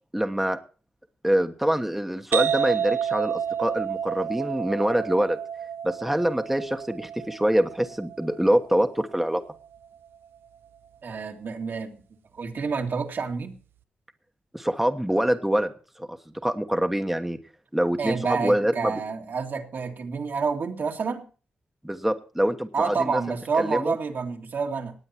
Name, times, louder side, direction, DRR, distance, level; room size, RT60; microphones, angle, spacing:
voice 1, 0.1-0.6 1.2-5.4 5.8-9.4 14.5-15.7 16.0-17.4 17.7-18.9 21.8-23.9, right 1 dB, 5° right, 1.2 m, -25 dB
sound 1, 2.3-9.8, right 8 dB, 85° right, 0.5 m, -30 dB
voice 2, 11.0-12.0 12.3-13.6 18.0-21.2 22.7-24.9, right 5 dB, 65° right, 2.3 m, -28 dB
18.5 x 8.8 x 4.4 m
cardioid pair, 60°, 4 cm